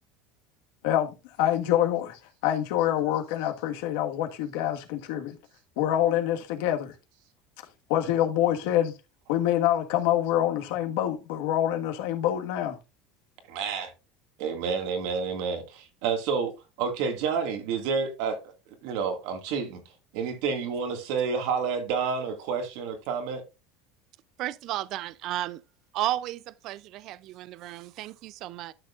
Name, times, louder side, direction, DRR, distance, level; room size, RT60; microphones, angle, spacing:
voice 1, 0.8-5.3 5.8-6.9 7.9-8.9 9.3-12.8, left 11 dB, 75° left, 1.6 m, -26 dB
voice 2, 13.5-13.9 14.4-18.4 18.8-19.8 20.1-23.4, right 5 dB, 65° right, 2.1 m, -29 dB
voice 3, 24.4-25.6 25.9-28.7, right 14 dB, 45° right, 0.4 m, -33 dB
12.0 x 6.5 x 2.5 m
cardioid pair, 160°, 0 cm